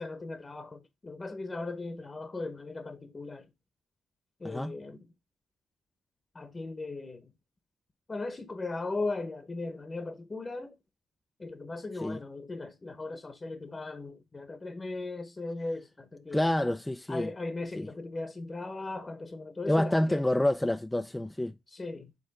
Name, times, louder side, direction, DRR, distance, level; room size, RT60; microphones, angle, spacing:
voice 1, 0.0-3.5 4.4-5.1 6.3-7.3 8.1-10.8 11.4-16.5 17.1-20.4 21.7-22.1, left 3 dB, 25° left, 0.8 m, -38 dB
voice 2, 16.3-17.3 17.8-17.9 19.7-21.5, left 1 dB, 10° left, 0.3 m, -28 dB
7.7 x 3.7 x 3.9 m
cardioid pair, 90°, 0 cm